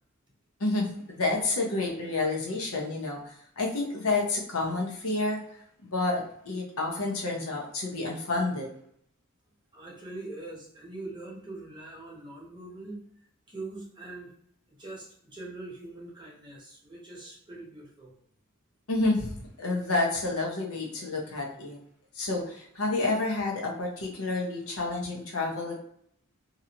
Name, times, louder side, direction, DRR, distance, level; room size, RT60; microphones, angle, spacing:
voice 1, 0.6-5.4 5.8-8.7 18.9-21.8 22.1-25.8, left 2 dB, 75° left, 0 dB, 0.8 m, -29 dB
voice 2, 9.7-13.0 13.5-14.3 14.7-18.1, right 2 dB, 20° right, -4 dB, 0.9 m, -42 dB
2.9 x 2.6 x 2.8 m, 0.68 s
head